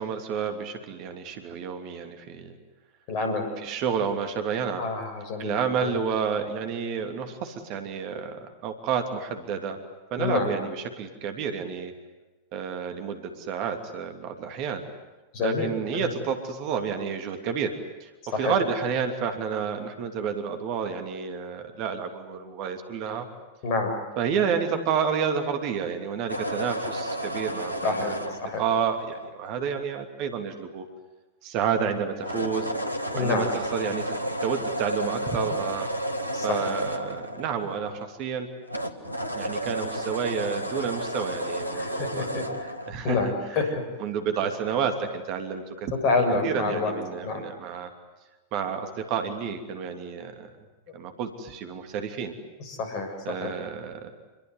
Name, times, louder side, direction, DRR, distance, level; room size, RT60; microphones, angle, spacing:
voice 1, 0.0-2.5 3.6-4.8 5.4-9.8 10.1-11.9 12.5-14.8 15.4-17.7 18.0-23.3 24.2-28.2 28.6-30.9 31.4-32.7 33.1-35.9 36.4-38.5 39.3-42.3 42.9-43.3 44.0-45.9 46.4-47.9 48.5-50.5 50.9-52.3 53.2-54.1, right 7 dB, 40° right, 6 dB, 2.9 m, -30 dB
voice 2, 3.1-3.5 4.8-6.0 10.2-10.5 15.3-16.1 18.3-18.5 23.6-23.9 27.8-28.2 28.4-28.6 33.1-33.5 36.3-36.7 41.7-42.7 43.0-43.8 46.0-46.9 47.2-47.4 52.6-53.5, left 3 dB, 40° left, 6 dB, 7.1 m, -28 dB
sound 1, 26.3-29.7 32.2-38.3 38.7-42.9, equal, 90° right, 1.8 m, -32 dB
27.5 x 22.0 x 9.7 m, 1.1 s
figure-of-eight pair, 90°, 0 cm